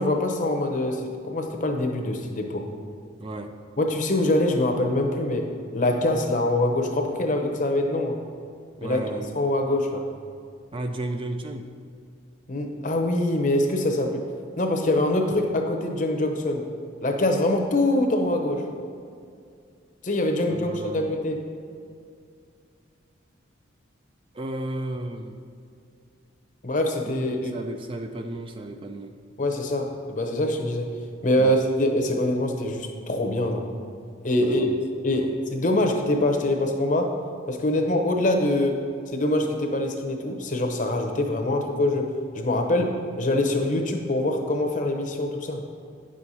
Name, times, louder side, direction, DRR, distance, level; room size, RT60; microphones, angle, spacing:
voice 1, 0.0-2.6 3.8-8.2 8.8-9.0 9.3-10.0 12.5-14.2 14.6-16.6 17.0-18.7 20.0-21.4 26.6-27.4 29.4-30.9 31.2-33.7 34.2-37.1 37.5-38.8 39.1-45.6, left 1 dB, 40° left, 4 dB, 0.8 m, -24 dB
voice 2, 3.2-3.5 8.8-9.3 10.7-11.7 20.5-21.1 24.3-25.4 27.0-29.1 31.4-31.5 34.4-34.8 35.1-35.3, right 1 dB, 30° right, 6 dB, 0.4 m, -34 dB
9.4 x 6.4 x 4.1 m, 2.3 s
head